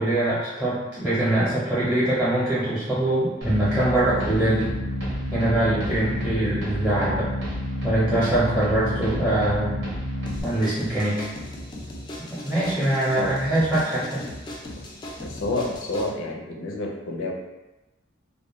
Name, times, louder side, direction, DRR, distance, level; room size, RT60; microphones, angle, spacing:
voice 1, 0.0-4.7 5.3-7.3 7.8-9.8 10.4-11.3 12.3-14.3, right 1 dB, 5° right, -12 dB, 0.7 m, -23 dB
sound 1, 3.4-10.4, left 1 dB, 75° right, 0.8 m, -29 dB
sound 2, 10.3-16.1, left 1 dB, 25° left, 0.3 m, -38 dB
voice 2, 15.2-17.3, left 2 dB, 85° left, 0 dB, 0.5 m, -29 dB
2.2 x 2.2 x 3.0 m, 1.0 s
head